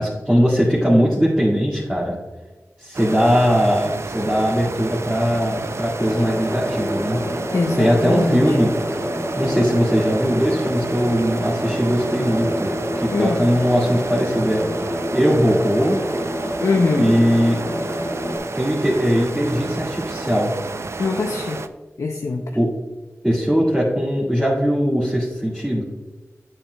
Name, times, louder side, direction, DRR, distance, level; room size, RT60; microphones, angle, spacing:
voice 1, 0.0-2.2 2.8-7.2 7.8-9.0 9.4-12.7 13.0-14.6 15.1-16.0 17.0-17.6 18.5-20.5 22.5-22.7 23.2-25.8, equal, 10° right, -7 dB, 1.9 m, -20 dB
sound 1, 2.9-21.7, right 3 dB, 60° right, 0.4 m, -31 dB
sound 2, 6.0-18.4, equal, 50° left, 2.3 m, -27 dB
voice 2, 7.5-8.6 13.1-13.5 16.6-17.2 21.0-21.6 22.0-22.6, left 3 dB, 75° left, 3 dB, 0.5 m, -22 dB
8.9 x 7.0 x 2.2 m, 1.3 s
wide cardioid pair, 50°, 5 cm